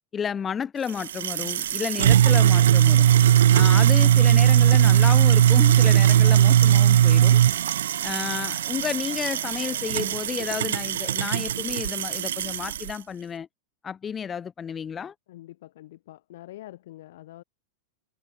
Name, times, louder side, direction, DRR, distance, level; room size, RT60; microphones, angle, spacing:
voice 1, 0.1-3.1 3.5-7.4 8.0-13.5 13.8-15.1, left 7 dB, 20° left, 0.6 m, -31 dB
sound 1, 0.9-12.9, right 11 dB, 60° right, 0.5 m, -19 dB
voice 2, 15.3-17.4, left 15 dB, 55° left, 5.9 m, -45 dB
figure-of-eight pair, 90°, 0 cm